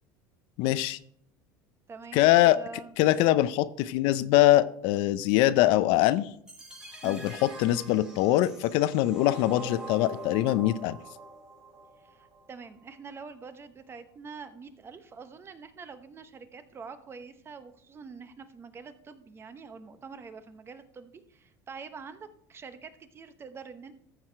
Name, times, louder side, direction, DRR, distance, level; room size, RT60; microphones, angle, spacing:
voice 1, 0.6-1.0 2.1-2.6 3.0-6.3 7.0-11.0, left 15 dB, 65° left, 15 dB, 0.5 m, -23 dB
voice 2, 1.9-2.9 7.0-7.3 12.0-24.0, right 5 dB, 25° right, 10 dB, 0.9 m, -45 dB
sound 1, 6.5-12.5, right 1 dB, 5° right, 1.8 m, -44 dB
14.0 x 4.9 x 4.5 m, 0.65 s
supercardioid pair, 120°, 9 cm